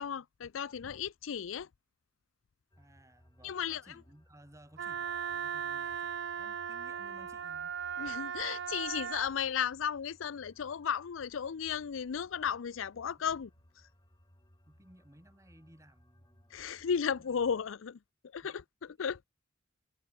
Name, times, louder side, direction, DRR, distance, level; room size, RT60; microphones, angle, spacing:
voice 1, 0.0-1.7 3.4-3.8 8.0-13.5 16.5-18.0 18.2-19.3, left 7 dB, 75° left, 0.5 m, -35 dB
sound 1, 2.7-17.6, equal, 20° left, 4.0 m, -64 dB
voice 2, 2.8-7.8 14.7-16.6 17.1-17.4 18.4-18.5, right 1 dB, 15° right, 2.4 m, -59 dB
Wind instrument woodwind instrument, 4.8-9.3, right 8 dB, 65° right, 0.6 m, -37 dB
head